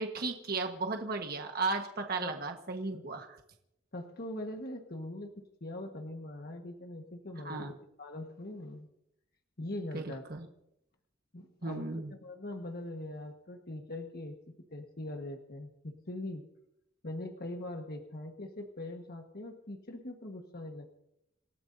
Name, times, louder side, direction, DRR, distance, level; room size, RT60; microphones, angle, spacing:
voice 1, 0.0-3.4 7.4-7.7 9.9-10.4 11.6-12.1, right 3 dB, 50° right, 4 dB, 1.3 m, -35 dB
voice 2, 3.9-8.9 9.6-10.3 11.3-16.4 17.0-20.9, left 1 dB, 50° left, 3 dB, 1.5 m, -42 dB
27.5 x 17.0 x 2.7 m, 0.81 s
head